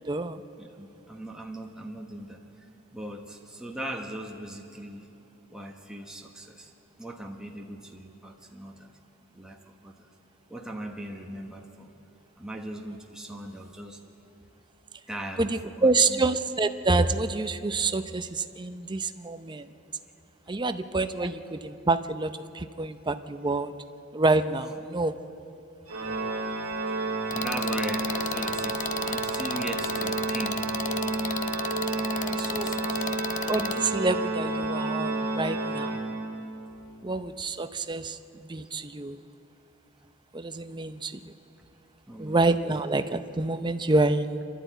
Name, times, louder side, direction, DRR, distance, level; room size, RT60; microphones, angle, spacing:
voice 1, 0.1-0.4 15.4-19.7 20.5-23.7 24.1-25.2 32.2-32.8 33.5-36.0 37.0-39.2 40.3-41.3 42.2-44.4, right 3 dB, 20° right, 10 dB, 0.6 m, -27 dB
voice 2, 0.6-5.1 5.5-6.7 7.0-8.9 9.3-10.1 10.5-11.9 12.4-14.0 15.1-16.2 20.5-20.6 26.9-30.6 32.2-33.1 40.0-40.1 42.1-42.4, right 1 dB, 5° right, 0 dB, 1.3 m, -39 dB
Organ, 25.9-36.6, right 2 dB, 90° right, 2.0 m, -30 dB
sound 1, 27.3-33.8, left 7 dB, 40° left, 0.7 m, -34 dB
27.5 x 12.5 x 9.3 m, 2.9 s
head